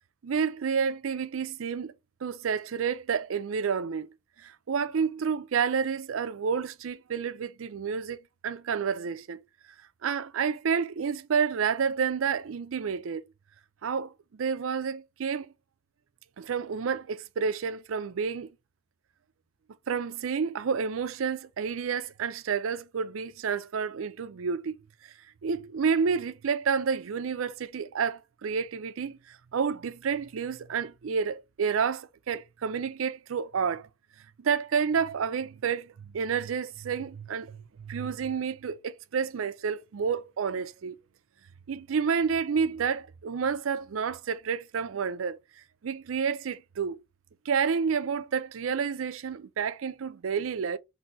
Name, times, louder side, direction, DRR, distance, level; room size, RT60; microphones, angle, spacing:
voice 1, 0.2-1.9 2.2-4.1 4.4-9.4 10.0-13.2 13.8-15.5 16.4-18.5 19.9-24.8 25.4-29.2 29.5-33.9 34.4-41.0 41.7-45.4 45.8-47.0 47.5-50.8, right 6 dB, 85° right, 0.5 m, -30 dB
4.0 x 2.7 x 4.2 m
head